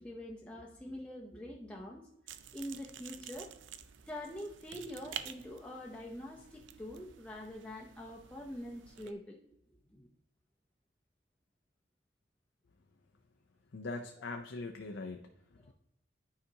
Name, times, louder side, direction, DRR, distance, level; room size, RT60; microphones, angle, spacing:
voice 1, 0.0-2.0 2.5-3.5 4.1-9.4 9.9-10.1 15.6-15.7, left 1 dB, 5° left, -3 dB, 0.6 m, -45 dB
sound 1, 2.3-9.1, right 9 dB, 85° right, 0.5 m, -50 dB
voice 2, 13.7-15.7, left 3 dB, 80° left, 4 dB, 0.6 m, -42 dB
9.4 x 4.9 x 2.8 m, 0.76 s
head